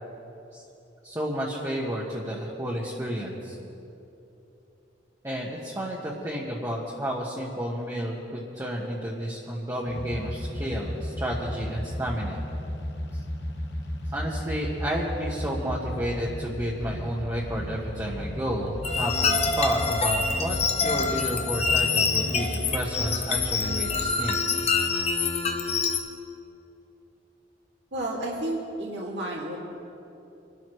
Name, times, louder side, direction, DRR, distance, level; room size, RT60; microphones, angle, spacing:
voice 1, 1.0-3.6 5.2-12.4 14.1-24.4, equal, 20° right, -5 dB, 1.4 m, -31 dB
sound 1, 9.9-24.1, equal, 70° left, 1.4 m, -35 dB
sound 2, 18.8-26.0, left 4 dB, 35° left, 0.9 m, -26 dB
voice 2, 27.9-29.6, right 1 dB, 70° right, -3 dB, 2.5 m, -31 dB
25.5 x 12.5 x 3.2 m, 2.9 s
head